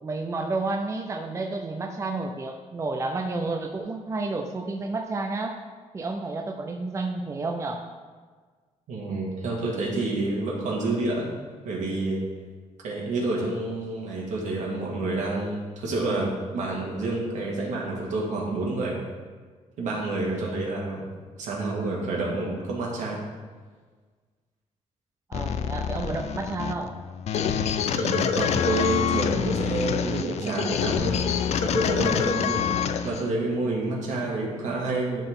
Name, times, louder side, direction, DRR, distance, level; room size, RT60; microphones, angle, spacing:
voice 1, 0.0-5.6 5.9-7.9 25.3-26.9, right 3 dB, 25° right, 3 dB, 0.5 m, -30 dB
voice 2, 8.9-11.3 11.6-12.2 12.8-18.9 19.8-21.1 21.4-23.2 27.9-31.2 31.6-32.6 33.0-35.2, right 2 dB, 75° right, -3 dB, 2.2 m, -28 dB
sound 1, 25.3-33.3, left 8 dB, 60° left, 0.4 m, -26 dB
11.5 x 4.0 x 3.7 m, 1.5 s
cardioid pair, 115°, 13 cm